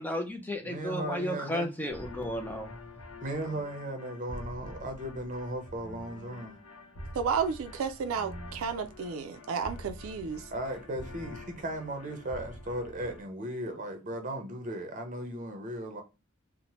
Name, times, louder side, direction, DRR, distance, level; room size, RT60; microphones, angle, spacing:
voice 1, 0.0-2.7, left 1 dB, 10° left, 0.4 m, -33 dB
voice 2, 0.6-1.7 3.2-6.6 10.5-16.0, right 1 dB, 40° right, 0.6 m, -36 dB
sound 1, 1.9-13.2, left 1 dB, 90° left, 0.8 m, -46 dB
voice 3, 7.1-10.4, right 6 dB, 85° right, 0.4 m, -32 dB
2.8 x 2.0 x 3.0 m
head